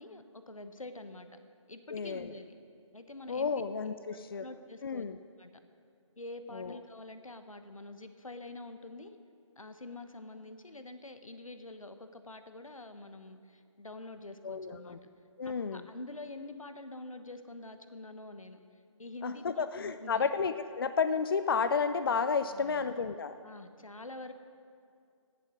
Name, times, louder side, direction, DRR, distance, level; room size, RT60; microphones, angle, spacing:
voice 1, 0.0-1.4 1.7-2.5 2.9-3.5 3.9-5.1 5.4-5.5 6.2-9.2 9.6-15.0 15.4-20.3 22.5-22.9 23.4-24.3, left 2 dB, 90° left, 9 dB, 1.1 m, -46 dB
voice 2, 1.9-2.3 3.3-4.4 4.8-5.2 6.5-6.8 14.4-15.0 15.4-15.8 19.2-23.3, left 5 dB, 45° left, 11 dB, 0.4 m, -31 dB
16.5 x 7.4 x 6.4 m, 2.4 s
figure-of-eight pair, 155°, 17 cm